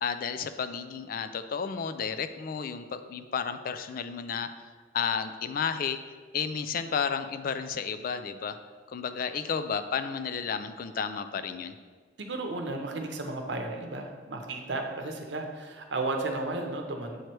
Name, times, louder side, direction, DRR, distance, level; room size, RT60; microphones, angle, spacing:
voice 1, 0.0-4.5 4.9-6.0 6.3-8.6 8.9-11.8, left 6 dB, 50° left, 10 dB, 0.3 m, -32 dB
voice 2, 12.3-17.2, right 2 dB, 80° right, 3 dB, 0.8 m, -33 dB
7.9 x 3.2 x 4.5 m, 1.5 s
head